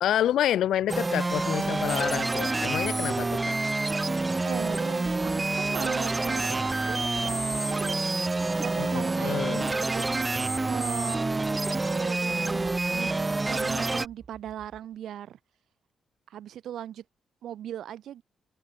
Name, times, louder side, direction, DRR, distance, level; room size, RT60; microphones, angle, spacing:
voice 1, 0.0-3.6 8.8-9.7, left 11 dB, 90° left, 0.3 m, -28 dB
sound 1, 0.9-14.1, right 3 dB, 15° right, 0.6 m, -27 dB
voice 2, 4.4-8.3 8.6-11.2 11.9-15.4 16.3-17.0 17.4-18.2, right 11 dB, 85° right, 0.7 m, -39 dB
sound 2, 12.2-15.1, right 5 dB, 35° right, 4.1 m, -54 dB
cardioid pair, 140°, 0 cm